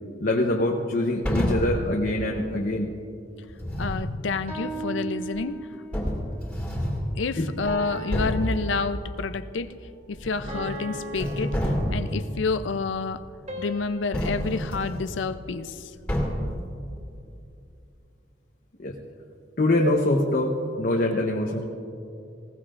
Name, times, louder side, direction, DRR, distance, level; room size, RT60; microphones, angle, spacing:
voice 1, 0.2-2.9 7.4-7.5 18.8-19.0 19.6-21.7, left 1 dB, 50° left, 0 dB, 0.9 m, -24 dB
sound 1, 1.2-1.8 3.5-4.1 5.4-5.5 5.9-7.1 7.6-7.8 8.1-8.6 10.1-10.8 11.1-12.2 14.1-15.1 16.1-16.6, equal, 5° left, 2.3 m, -28 dB
voice 2, 3.8-5.6 7.2-9.7 10.1-11.5 11.9-13.2 13.6-15.9, left 4 dB, 90° left, 12 dB, 0.5 m, -29 dB
sound 2, 4.5-6.0 7.7-9.3 10.5-12.4 13.5-15.8, right 1 dB, 40° right, 2.8 m, -38 dB
20.0 x 17.0 x 2.5 m, 2.6 s
head